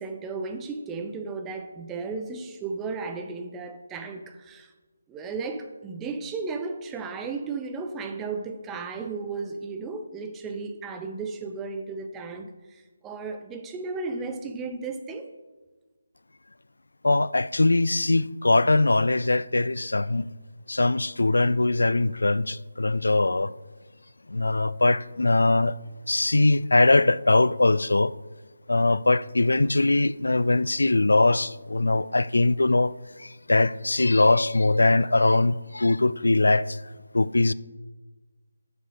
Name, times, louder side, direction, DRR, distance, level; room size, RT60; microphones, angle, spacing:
voice 1, 0.0-4.7 5.1-15.3, right 4 dB, 10° right, 0.7 m, -34 dB
voice 2, 17.0-20.3 20.7-23.5 24.3-25.7 26.1-28.1 28.7-36.8 37.1-37.5, left 2 dB, 75° left, 0.4 m, -21 dB
10.0 x 7.1 x 5.0 m
figure-of-eight pair, 155°, 0 cm